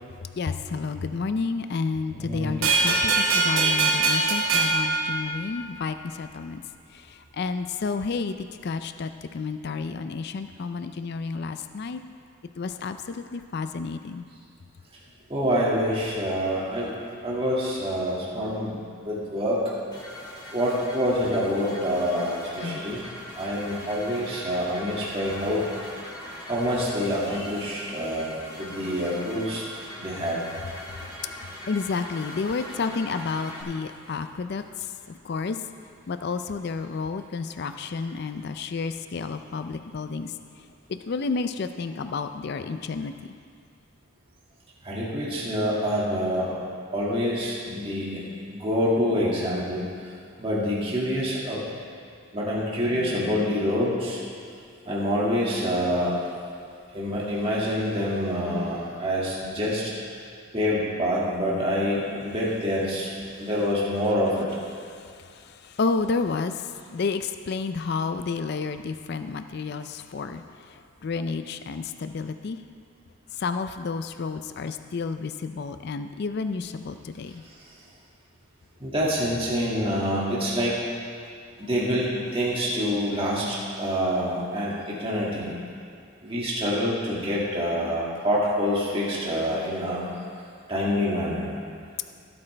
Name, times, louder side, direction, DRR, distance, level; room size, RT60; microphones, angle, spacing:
voice 1, 0.4-6.6 6.9-12.0 12.6-14.3 22.6-22.8 31.7-35.6 36.1-43.1 64.9-72.6 73.3-77.4, left 4 dB, 50° left, 9 dB, 0.4 m, -31 dB
voice 2, 2.2-2.5 2.8-3.2 15.3-17.0 17.2-19.6 20.5-23.0 23.3-25.6 26.5-29.6 30.0-30.4 44.8-46.6 46.9-48.2 48.5-49.9 50.4-51.6 52.3-54.2 54.9-56.3 56.9-59.9 60.5-63.1 63.4-64.5 78.8-80.8 81.6-85.6 86.2-90.1 90.7-91.5, equal, 25° right, -6 dB, 2.0 m, -26 dB
sound 1, 2.6-5.9, right 3 dB, 80° right, 1.9 m, -23 dB
sound 2, 19.9-33.6, left 1 dB, 20° left, 1.8 m, -41 dB
16.0 x 8.6 x 3.3 m, 2.4 s
head